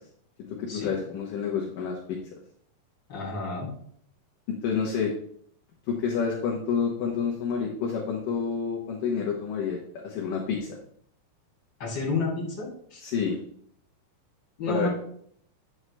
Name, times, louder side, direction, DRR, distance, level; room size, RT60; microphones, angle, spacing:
voice 1, 0.4-2.2 4.6-5.1 5.9-10.7 13.0-13.4 14.7-14.9, left 6 dB, 70° left, -2 dB, 2.2 m, -29 dB
voice 2, 3.1-3.7 11.8-13.0 14.6-14.9, left 3 dB, 30° left, -3 dB, 3.2 m, -30 dB
9.7 x 6.3 x 3.3 m, 0.64 s
omnidirectional pair, 5.0 m